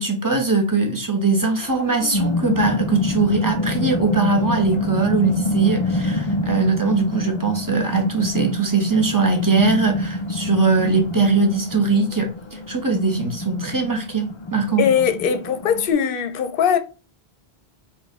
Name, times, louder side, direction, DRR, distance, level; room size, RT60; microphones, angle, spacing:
voice 1, 0.0-14.9, right 4 dB, 20° right, 0.7 m, -21 dB
sound 1, 1.6-15.9, left 1 dB, 50° left, 0.3 m, -26 dB
voice 2, 14.8-16.8, left 8 dB, 65° left, 0.7 m, -20 dB
4.1 x 2.6 x 3.5 m
omnidirectional pair, 1.0 m